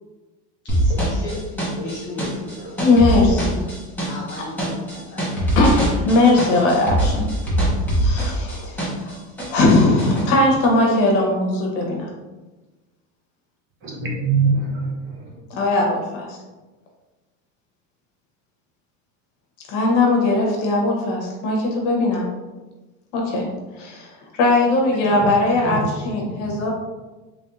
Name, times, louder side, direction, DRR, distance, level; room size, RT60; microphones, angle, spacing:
voice 1, 0.6-1.4 1.8-2.9 4.0-5.6, left 2 dB, 30° left, -4 dB, 0.6 m, -36 dB
sound 1, 0.7-9.1 9.4-10.2, right 1 dB, 5° left, 0.9 m, -22 dB
voice 2, 2.8-3.5 5.6-7.3 7.9-9.2 9.5-12.1 15.5-16.4 19.7-22.3 23.1-23.5 23.7-26.7, left 2 dB, 55° left, 0 dB, 1.1 m, -19 dB
voice 3, 13.8-15.3 25.6-25.8 26.4-26.7, right 4 dB, 35° right, -2 dB, 1.0 m, -23 dB
3.5 x 3.2 x 2.6 m, 1.2 s
supercardioid pair, 140°, 35 cm